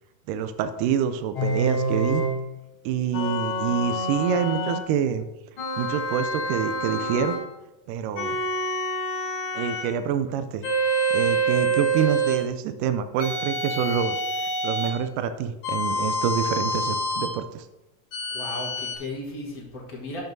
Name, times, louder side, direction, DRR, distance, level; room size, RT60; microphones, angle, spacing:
voice 1, 0.3-2.2 2.9-5.3 5.8-7.4 7.9-8.4 9.5-10.6 11.1-17.7, right 8 dB, 85° right, 9 dB, 2.2 m, -27 dB
sound 1, 1.4-2.4 3.1-4.9 5.6-7.5 8.2-9.9 10.6-12.5 13.2-15.0 15.6-17.4 18.1-19.0, right 1 dB, 50° left, 1.7 m, -27 dB
voice 2, 18.3-20.2, left 1 dB, 70° left, -2 dB, 0.8 m, -35 dB
11.5 x 7.0 x 2.7 m, 0.96 s
omnidirectional pair, 3.8 m